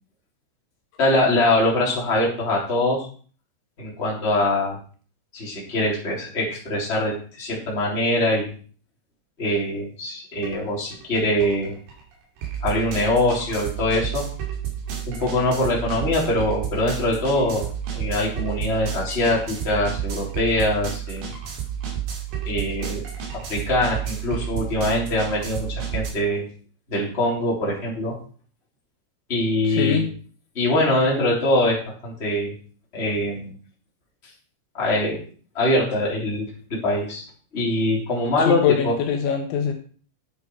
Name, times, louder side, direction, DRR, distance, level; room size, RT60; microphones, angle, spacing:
voice 1, 1.0-3.1 3.8-4.8 5.3-8.5 9.4-11.7 12.6-14.2 15.1-17.7 17.9-21.3 22.4-23.0 23.3-26.4 26.9-28.1 29.3-30.0 30.5-32.5 32.9-33.5 34.7-35.2 35.5-37.2 37.5-38.9, left 1 dB, 15° left, -4 dB, 2.9 m, -23 dB
sound 1, 10.4-10.6 10.9-26.1, right 9 dB, 65° right, 4.3 m, -31 dB
voice 2, 29.7-30.1 38.5-39.8, left 7 dB, 75° left, 4 dB, 3.2 m, -23 dB
10.5 x 7.9 x 4.7 m, 0.43 s
omnidirectional pair, 5.8 m